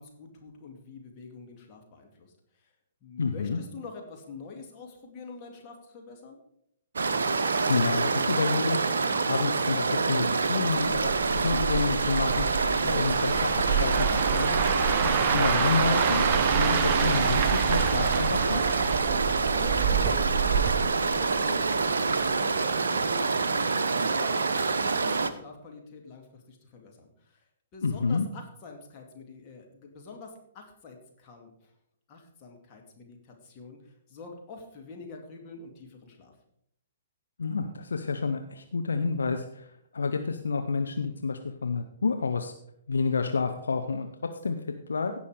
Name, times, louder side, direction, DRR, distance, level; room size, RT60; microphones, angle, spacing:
voice 1, 0.0-2.7 3.0-6.4 19.0-27.4 27.7-31.7 32.1-36.3, left 4 dB, 30° left, 1 dB, 2.3 m, -46 dB
voice 2, 3.2-3.6 7.6-8.8 9.2-12.4 12.8-14.6 15.1-18.6 27.8-28.3 37.4-42.5 42.9-45.1, left 4 dB, 65° left, 6 dB, 0.7 m, -29 dB
sound 1, 7.0-25.3, right 4 dB, 65° right, 0.8 m, -26 dB
sound 2, 10.8-21.9 22.2-22.5, right 6 dB, 35° right, 0.9 m, -28 dB
16.5 x 5.6 x 4.9 m, 0.75 s
figure-of-eight pair, 120°, 0 cm